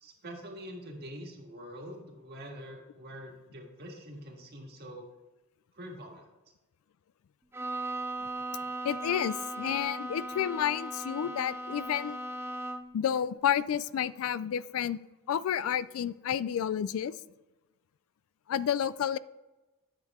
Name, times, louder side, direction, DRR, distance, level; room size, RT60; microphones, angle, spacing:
voice 1, 0.0-5.1 5.7-6.3, equal, 50° right, 1 dB, 1.7 m, -45 dB
Bowed string instrument, 7.5-13.0, right 1 dB, 10° right, 0.3 m, -38 dB
voice 2, 8.8-12.2 12.9-15.0 15.3-17.1 18.5-19.2, left 9 dB, 65° left, 18 dB, 0.3 m, -30 dB
9.6 x 6.5 x 3.6 m, 1.1 s
head